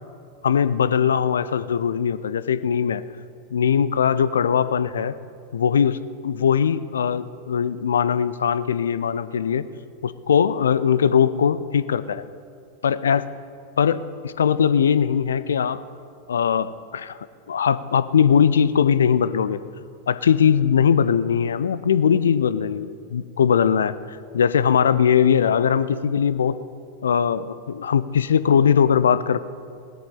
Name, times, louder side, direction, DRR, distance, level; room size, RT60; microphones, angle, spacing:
voice 1, 0.4-3.0 3.5-5.1 5.5-6.0 6.2-9.6 10.0-12.3 12.8-13.2 13.8-15.8 16.3-17.2 17.5-19.6 20.1-26.6 27.0-29.4, left 7 dB, 65° left, 15 dB, 0.5 m, -20 dB
18.0 x 13.0 x 3.8 m, 2.3 s
figure-of-eight pair, 90°, 0 cm